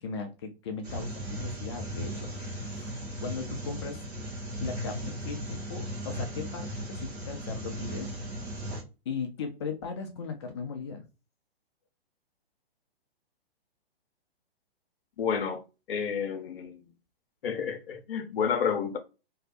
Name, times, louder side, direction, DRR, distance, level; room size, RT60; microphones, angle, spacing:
voice 1, 0.0-2.9 3.2-4.0 4.6-8.1 8.5-8.6 9.1-11.0, left 5 dB, 30° left, 0.4 m, -38 dB
sound 1, 0.8-8.8, equal, 90° right, 1.0 m, -37 dB
voice 2, 15.2-15.6 15.9-16.8 17.4-19.0, left 7 dB, 65° left, 0.6 m, -30 dB
2.7 x 2.0 x 2.4 m
figure-of-eight pair, 125°, 31 cm